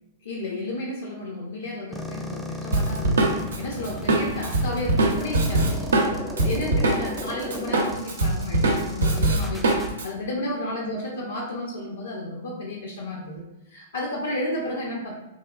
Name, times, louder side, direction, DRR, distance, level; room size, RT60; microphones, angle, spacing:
voice 1, 0.2-9.7 10.0-13.4 13.7-15.1, left 1 dB, 70° left, -2 dB, 0.4 m, -32 dB
sound 1, 1.9-9.9, left 1 dB, ahead, 0.3 m, -36 dB
Drum kit, 2.7-7.2 7.5-10.1, right 2 dB, 70° right, 0.4 m, -22 dB
2.9 x 2.2 x 2.2 m, 0.95 s
figure-of-eight pair, 105°, 0 cm